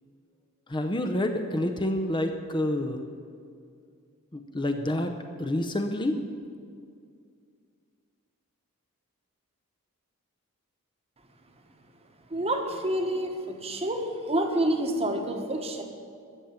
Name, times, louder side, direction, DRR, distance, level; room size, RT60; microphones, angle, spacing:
voice 1, 0.7-3.0 4.3-5.1 5.4-6.2, left 1 dB, 20° left, 5 dB, 0.7 m, -28 dB
voice 2, 12.3-15.8, right 1 dB, 25° right, 4 dB, 1.2 m, -28 dB
13.5 x 7.1 x 8.9 m, 2.3 s
head